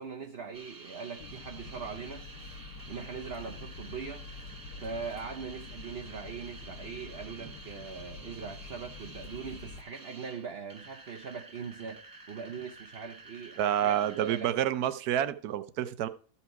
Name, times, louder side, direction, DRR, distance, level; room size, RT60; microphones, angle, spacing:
voice 1, 0.0-2.3 2.9-4.3 4.8-14.5, right 5 dB, 50° right, 0.8 m, -41 dB
sound 1, 0.5-14.4, right 2 dB, 30° right, 0.4 m, -50 dB
sound 2, 1.2-9.8, left 4 dB, 85° left, 1.7 m, -47 dB
voice 2, 13.6-16.1, right 11 dB, 75° right, 1.2 m, -28 dB
13.5 x 5.8 x 4.7 m
omnidirectional pair, 1.7 m